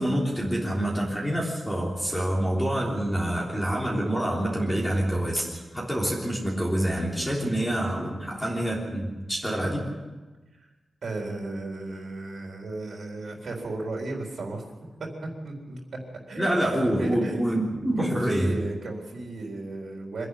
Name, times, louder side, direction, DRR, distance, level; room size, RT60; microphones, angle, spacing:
voice 1, 0.0-9.8 16.4-18.5, right 1 dB, 5° left, -4 dB, 3.4 m, -26 dB
voice 2, 11.0-14.6 15.0-15.8 16.3-17.6 18.0-20.3, right 2 dB, 70° right, 0 dB, 4.0 m, -35 dB
25.0 x 11.0 x 9.9 m, 1.2 s
wide cardioid pair, 160°, 0 cm